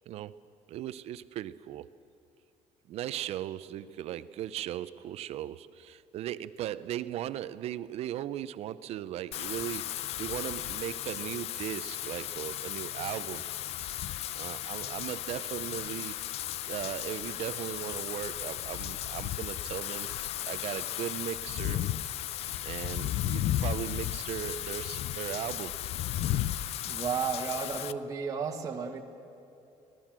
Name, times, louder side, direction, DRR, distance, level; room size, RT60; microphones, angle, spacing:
voice 1, 0.1-0.4 0.7-1.9 2.9-13.4 14.3-16.2 16.7-20.1 20.4-21.8 22.6-25.9, right 12 dB, 60° right, 15 dB, 0.6 m, -37 dB
Wind / Rain, 9.3-27.9, left 12 dB, 60° left, 0.6 m, -35 dB
voice 2, 26.8-29.0, right 6 dB, 30° right, 1 dB, 1.6 m, -33 dB
25.5 x 18.5 x 7.5 m, 2.7 s
cardioid pair, 160°, 12 cm